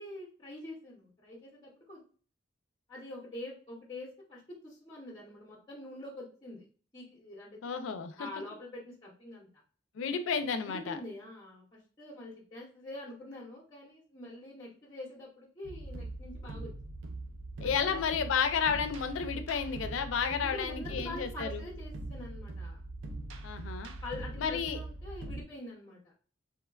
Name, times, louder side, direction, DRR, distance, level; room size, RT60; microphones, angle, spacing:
voice 1, 0.0-2.0 2.9-6.6 6.9-7.6 8.2-9.5 10.7-16.7 17.9-18.0 20.4-22.8 24.0-26.1, left 1 dB, 20° left, -5 dB, 0.6 m, -45 dB
voice 2, 7.6-8.3 10.0-11.0 17.6-21.6 23.4-23.9 24.4-24.8, left 6 dB, 85° left, 8 dB, 0.4 m, -32 dB
sound 1, 15.6-25.4, right 2 dB, 70° right, 0.4 m, -42 dB
3.0 x 2.1 x 2.2 m, 0.41 s
head